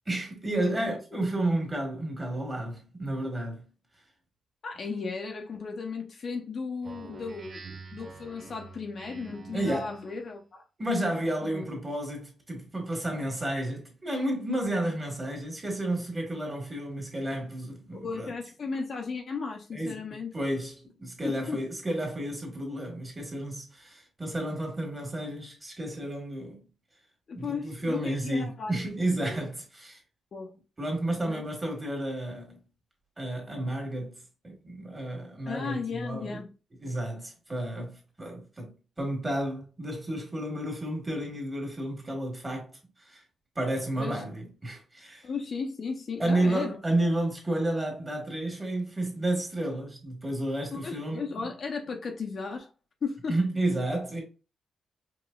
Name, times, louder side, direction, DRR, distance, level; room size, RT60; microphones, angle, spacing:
voice 1, 0.1-3.6 9.5-9.9 10.8-18.3 19.7-20.0 20.3-26.6 27.3-30.0 30.8-32.6 33.2-34.1 34.4-36.4 36.8-42.7 43.0-43.2 43.5-45.2 46.2-51.5 53.3-54.2, right 1 dB, 15° right, 1.3 m, -31 dB
voice 2, 0.6-0.9 4.6-7.6 7.9-10.6 11.4-11.7 17.9-20.3 21.2-21.6 27.3-28.9 29.3-29.4 30.3-30.5 31.2-31.4 35.5-36.5 44.0-44.2 45.2-46.8 50.7-52.7 53.0-53.4, left 4 dB, 45° left, 0.5 m, -35 dB
Speech synthesizer, 6.8-10.2, right 3 dB, 35° right, 0.6 m, -46 dB
4.9 x 2.9 x 2.2 m
wide cardioid pair, 150°, 0 cm